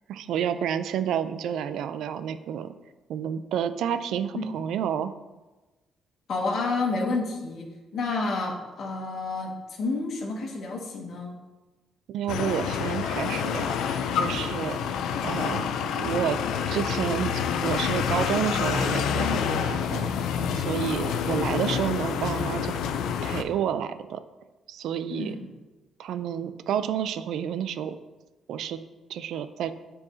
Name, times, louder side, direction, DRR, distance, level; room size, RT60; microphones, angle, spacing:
voice 1, 0.1-2.8 3.1-5.1 12.1-14.8 15.2-15.7 16.0-16.4 16.7-20.1 20.5-22.7 23.2-24.2 24.7-25.4 26.0-28.0 28.5-28.8 29.1-29.7, right 9 dB, 80° right, 11 dB, 0.4 m, -30 dB
voice 2, 6.3-11.3 25.1-25.4, left 3 dB, 65° left, -1 dB, 1.6 m, -30 dB
sound 1, 12.3-23.4, left 7 dB, 85° left, 0.4 m, -28 dB
9.8 x 4.6 x 2.7 m, 1.2 s
cardioid pair, 90°, 0 cm